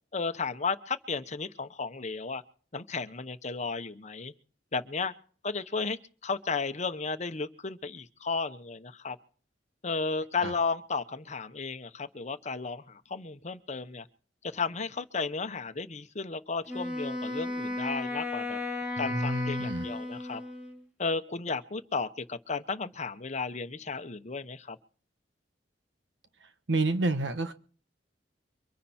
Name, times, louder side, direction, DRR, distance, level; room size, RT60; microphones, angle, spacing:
voice 1, 0.1-2.4 2.7-4.3 4.7-5.1 5.4-6.0 6.2-9.2 9.8-14.1 14.5-18.6 19.0-20.4 21.0-24.8, left 4 dB, 40° left, 1.0 m, -34 dB
Wind instrument woodwind instrument, 16.7-20.8, left 2 dB, 5° right, 2.7 m, -34 dB
voice 2, 19.0-19.9 26.7-27.5, right 2 dB, 90° right, 1.2 m, -29 dB
24.0 x 10.0 x 4.4 m
head